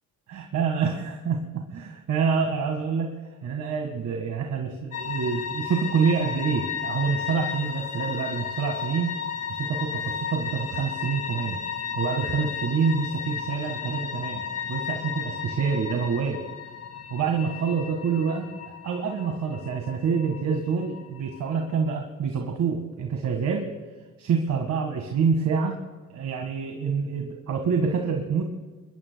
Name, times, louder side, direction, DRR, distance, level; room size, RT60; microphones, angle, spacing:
voice 1, 0.3-3.1 3.4-9.1 9.5-11.6 12.0-16.4 17.1-18.5 18.8-23.7 24.2-25.8 26.1-28.4, right 5 dB, 65° right, 3 dB, 1.9 m, -27 dB
sound 1, 4.9-21.9, left 7 dB, 60° left, 1.6 m, -34 dB
26.0 x 22.5 x 2.3 m, 1.3 s
cardioid pair, 90°, 30 cm